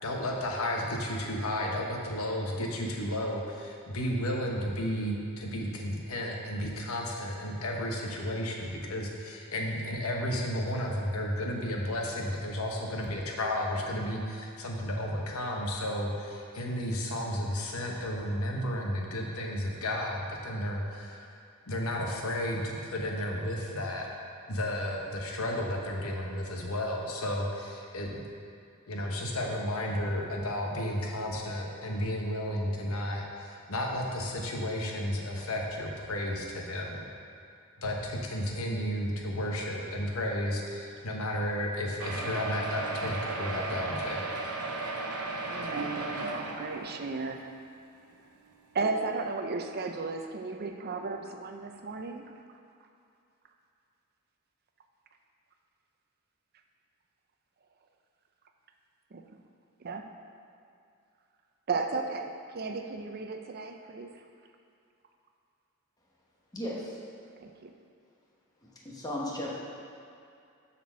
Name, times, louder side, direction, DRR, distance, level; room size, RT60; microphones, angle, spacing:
voice 1, 0.0-21.3 21.7-24.1 24.5-28.2 28.9-37.0 37.8-44.2, left 1 dB, 70° left, 0 dB, 1.0 m, -33 dB
sound 1, 42.0-47.4 48.1-48.2 48.5-48.6 48.9-49.0, right 2 dB, 85° right, 0.8 m, -35 dB
voice 2, 45.4-47.5 48.7-52.2 59.1-59.2 59.8-60.0 61.7-64.1 67.4-67.7, right 3 dB, 45° right, 5 dB, 0.5 m, -34 dB
voice 3, 66.5-67.0 68.8-69.5, left 1 dB, 15° left, -4 dB, 1.1 m, -35 dB
7.2 x 4.4 x 6.2 m, 2.5 s
head